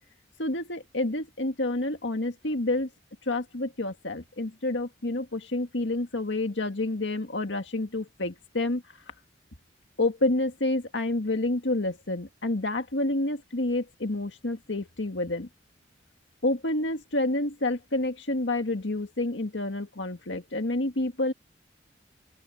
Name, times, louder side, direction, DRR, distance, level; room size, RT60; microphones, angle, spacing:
voice 1, 0.4-2.9 3.3-8.8 10.0-15.5 16.4-21.3, left 2 dB, 85° left, 1.9 m, -29 dB
open air
head